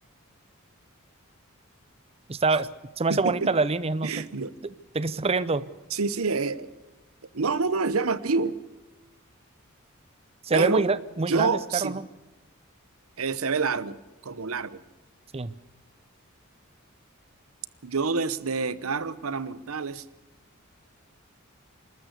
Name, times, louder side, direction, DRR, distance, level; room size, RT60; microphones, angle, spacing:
voice 1, 2.3-2.7 3.0-4.1 4.9-5.7 10.4-12.1 15.3-15.5, right 3 dB, 30° right, 16 dB, 0.6 m, -25 dB
voice 2, 3.1-3.5 4.0-4.5 5.9-6.7 7.3-8.6 10.5-10.8 11.3-12.0 13.2-14.8 17.8-20.0, right 4 dB, 90° right, 17 dB, 0.9 m, -27 dB
28.0 x 13.0 x 8.2 m, 1.1 s
head